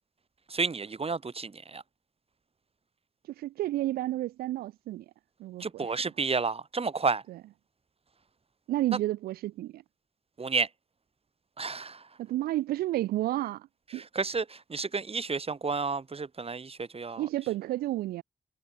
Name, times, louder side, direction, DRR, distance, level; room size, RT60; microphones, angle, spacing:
voice 1, 0.5-1.8 5.6-7.2 10.4-10.7 11.6-12.2 13.9-17.3, right 4 dB, 40° right, 1.8 m, -31 dB
voice 2, 3.2-5.1 5.4-5.9 7.3-7.4 8.7-9.8 12.2-13.7 13.9-14.0 17.2-18.2, right 15 dB, 90° right, 0.5 m, -31 dB
supercardioid pair, 45°, 15 cm